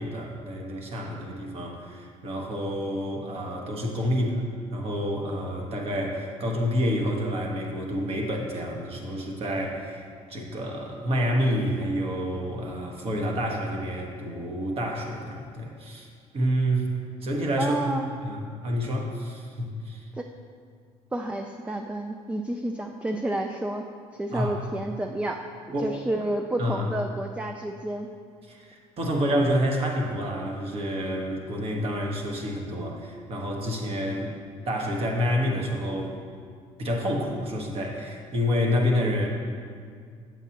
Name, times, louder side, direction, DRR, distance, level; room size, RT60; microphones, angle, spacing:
voice 1, 0.0-4.4 4.7-16.1 16.3-16.9 17.2-20.1 24.3-24.6 25.7-25.9 26.6-26.9 28.5-34.4 34.6-36.2 36.8-39.3, equal, 45° right, 1 dB, 1.3 m, -28 dB
voice 2, 17.6-18.1 20.2-20.3 21.1-23.8 24.1-25.4 25.8-28.1, right 1 dB, 10° right, 4 dB, 0.3 m, -30 dB
7.8 x 7.2 x 2.9 m, 2.1 s
supercardioid pair, 90°, 13 cm